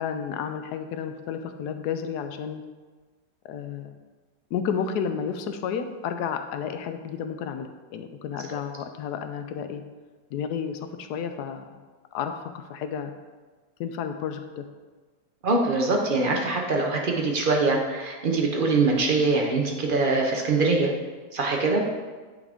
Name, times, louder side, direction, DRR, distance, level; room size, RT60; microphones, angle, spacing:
voice 1, 0.0-2.6 3.4-3.9 4.5-9.8 10.3-11.7 12.1-13.1 13.8-14.7, left 7 dB, 75° left, 8 dB, 1.1 m, -31 dB
voice 2, 15.4-20.9 21.3-21.8, right 3 dB, 60° right, 1 dB, 0.5 m, -23 dB
9.8 x 3.6 x 3.5 m, 1.4 s
omnidirectional pair, 1.8 m